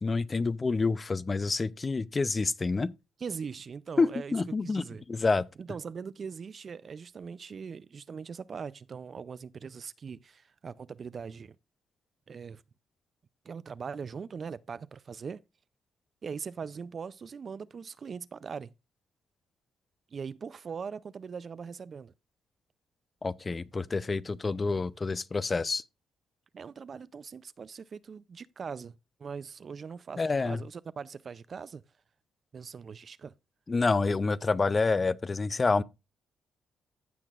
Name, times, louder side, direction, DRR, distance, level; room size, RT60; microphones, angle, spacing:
voice 1, 0.0-2.9 4.0-5.4 23.2-25.8 30.2-30.6 33.7-35.8, left 3 dB, 30° left, 0.5 m, -28 dB
voice 2, 3.2-4.4 4.6-5.0 5.6-11.6 12.3-12.6 13.4-15.4 16.2-18.7 20.1-22.1 26.5-31.8 32.5-33.3, right 6 dB, 45° right, 0.4 m, -41 dB
15.5 x 5.8 x 2.4 m
cardioid pair, 90°, 0 cm